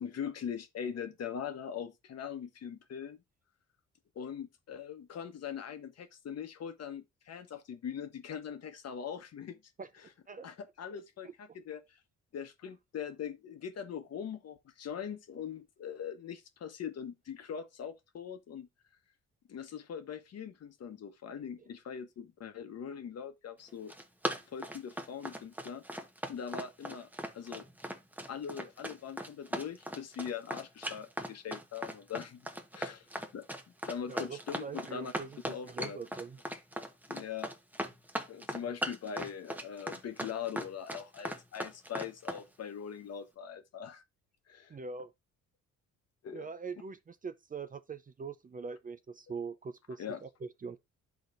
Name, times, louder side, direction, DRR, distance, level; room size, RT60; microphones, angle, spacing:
voice 1, 0.0-3.2 4.1-9.6 10.4-12.0 12.3-18.7 19.5-23.9 24.5-25.8 26.3-27.1 27.3-27.7 28.3-32.5 32.7-33.1 33.3-33.5 33.9-35.1 35.5-36.0 37.1-37.5 38.3-44.0 44.5-44.8 46.2-46.5 50.0-50.2, left 7 dB, 55° left, 1.0 m, -41 dB
voice 2, 10.9-11.3 34.1-36.4 44.7-45.1 46.3-50.8, right 4 dB, 30° right, 0.5 m, -43 dB
Run, 23.7-42.4, right 1 dB, 5° right, 0.9 m, -38 dB
11.5 x 4.0 x 2.5 m
cardioid pair, 90°, 30 cm